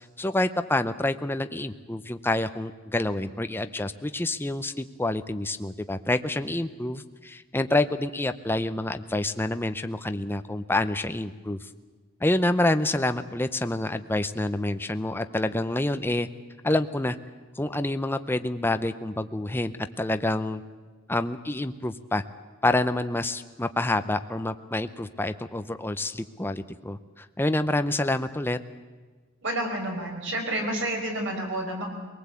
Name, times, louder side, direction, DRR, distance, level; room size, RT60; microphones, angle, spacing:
voice 1, 0.2-11.7 12.2-16.3 16.6-17.2 17.6-20.6 21.1-22.2 22.6-28.6, left 2 dB, 10° left, 10 dB, 0.6 m, -27 dB
voice 2, 29.4-31.9, right 1 dB, 60° right, 1 dB, 5.4 m, -29 dB
23.5 x 19.0 x 8.4 m, 1.4 s
head